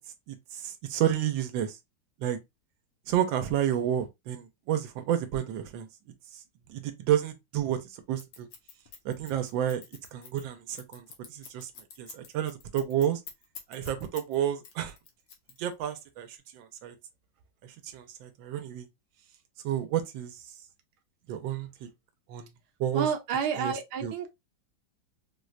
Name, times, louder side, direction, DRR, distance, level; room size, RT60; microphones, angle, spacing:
voice 1, 0.3-1.8 2.2-2.4 3.1-5.9 6.7-7.8 8.1-8.5 9.0-9.8 10.1-11.7 12.0-13.2 13.7-14.9 15.6-16.9 17.6-18.9 19.6-20.4 21.3-21.9 22.3-22.5 22.8-23.1 23.6-24.1, right 10 dB, 85° right, 1.4 m, -30 dB
Scissors, 8.2-14.3 14.6-15.9, left 7 dB, 80° left, 1.5 m, -47 dB
voice 2, 22.9-24.3, right 7 dB, 70° right, 1.1 m, -30 dB
4.5 x 2.1 x 2.4 m
omnidirectional pair, 2.1 m